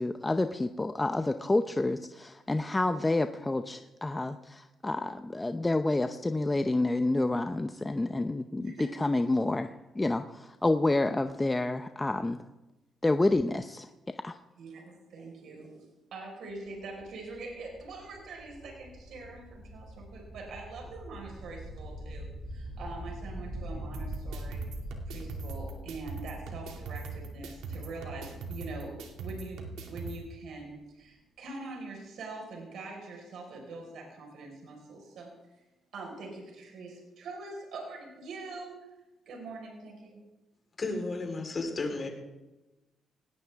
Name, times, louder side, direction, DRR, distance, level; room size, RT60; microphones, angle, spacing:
voice 1, 0.0-8.7 9.0-12.4 13.0-13.9 14.2-14.4, left 2 dB, 15° left, 8 dB, 0.7 m, -29 dB
voice 2, 8.6-8.9 14.6-15.8 16.1-24.6 25.1-28.9 29.2-35.6 35.9-38.9 39.2-40.2, right 3 dB, 70° right, 0 dB, 4.9 m, -43 dB
sound 1, 16.5-30.2, equal, 30° right, 6.9 m, -44 dB
sound 2, 23.9-30.2, right 3 dB, 90° right, 2.5 m, -41 dB
voice 3, 40.8-42.1, left 3 dB, 35° left, 2 dB, 4.1 m, -33 dB
18.5 x 17.5 x 3.6 m, 1.0 s
cardioid pair, 90°, 0 cm